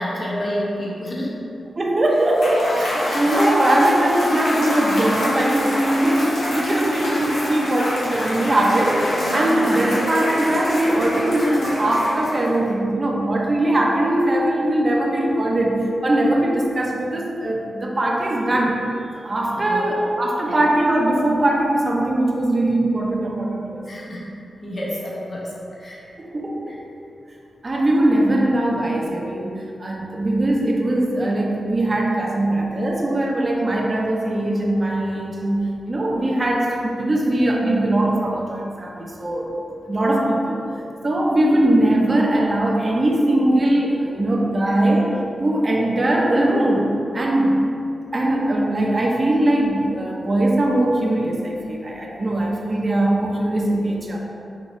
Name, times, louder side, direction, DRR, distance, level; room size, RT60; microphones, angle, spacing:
voice 1, 0.0-1.4 19.5-19.9 20.5-20.6 23.9-24.3 24.6-26.0 26.7-26.8 44.7-44.8, equal, 45° left, -6 dB, 1.2 m, -29 dB
voice 2, 1.8-18.8 19.2-23.8 26.3-26.9 27.6-39.5 39.8-40.6 41.0-45.1 45.4-47.6 48.1-54.2, right 1 dB, 40° right, -1 dB, 0.8 m, -20 dB
Cheering / Applause / Crowd, 2.2-12.7, equal, 80° left, 0.9 m, -25 dB
5.2 x 3.0 x 3.1 m, 2.6 s
supercardioid pair, 40°, 0 cm